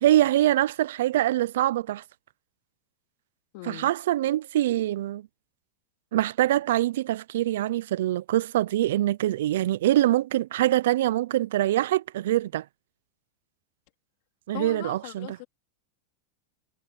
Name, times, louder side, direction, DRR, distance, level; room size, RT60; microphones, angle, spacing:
voice 1, 0.0-2.0 3.6-5.3 6.1-12.6 14.5-15.4, right 13 dB, 75° right, 0.5 m, -24 dB
voice 2, 3.5-3.9 14.5-15.5, left 24 dB, 55° left, 2.6 m, -39 dB
supercardioid pair, 140°, 0 cm